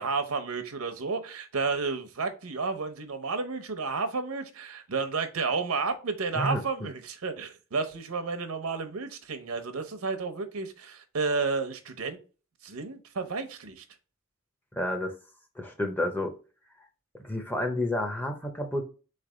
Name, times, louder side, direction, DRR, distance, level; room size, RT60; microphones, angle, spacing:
voice 1, 0.0-12.2 12.6-13.8, right 4 dB, 85° right, 0.8 m, -31 dB
voice 2, 14.8-15.1 15.6-16.3 17.2-18.8, left 1 dB, 10° left, 0.6 m, -30 dB
3.9 x 3.3 x 3.8 m
head